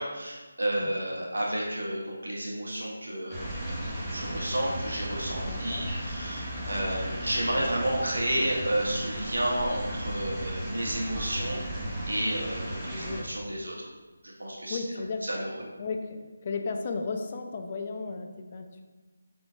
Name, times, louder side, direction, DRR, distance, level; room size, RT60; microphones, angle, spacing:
voice 1, 0.0-3.6 4.1-11.6 12.1-13.9 14.4-14.8 15.2-15.6, right 1 dB, 80° right, -4 dB, 1.2 m, -31 dB
sound 1, 3.3-13.2, right 1 dB, 10° right, 0.8 m, -35 dB
voice 2, 5.4-5.9 13.0-13.3 14.7-15.3 15.8-18.8, left 4 dB, 35° left, 4 dB, 0.4 m, -35 dB
4.9 x 3.8 x 2.3 m, 1.3 s
figure-of-eight pair, 160°, 0 cm